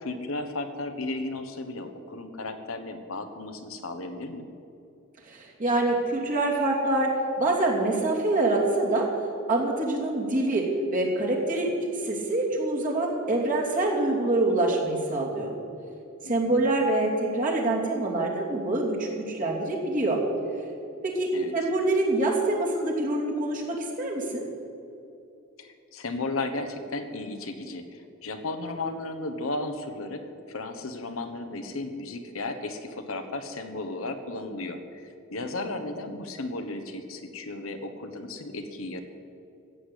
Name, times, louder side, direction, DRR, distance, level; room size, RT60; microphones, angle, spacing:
voice 1, 0.0-4.5 16.2-16.6 21.3-21.5 25.6-39.0, left 2 dB, 80° left, 8 dB, 1.2 m, -34 dB
voice 2, 5.3-9.1 9.5-11.7 12.0-15.5 16.2-20.2 21.0-24.4, right 2 dB, 40° right, -2 dB, 2.7 m, -25 dB
14.5 x 8.1 x 8.4 m, 2.7 s
head